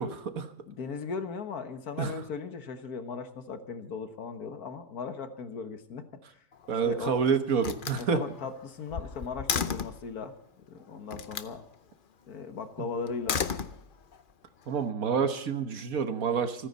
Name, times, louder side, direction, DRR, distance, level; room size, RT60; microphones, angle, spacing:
voice 1, 0.0-0.5 2.0-2.2 6.7-8.2 14.7-16.7, right 6 dB, 70° right, 8 dB, 1.6 m, -28 dB
voice 2, 0.7-6.1 6.3-6.4 6.8-7.3 8.0-10.3 10.7-11.6 12.3-13.4, left 5 dB, 80° left, 8 dB, 1.9 m, -37 dB
Slam, 6.5-7.1 7.6-10.1 11.1-11.6 13.1-14.2, left 6 dB, 45° left, 0.8 m, -34 dB
28.0 x 10.0 x 4.1 m, 0.68 s
omnidirectional pair, 1.6 m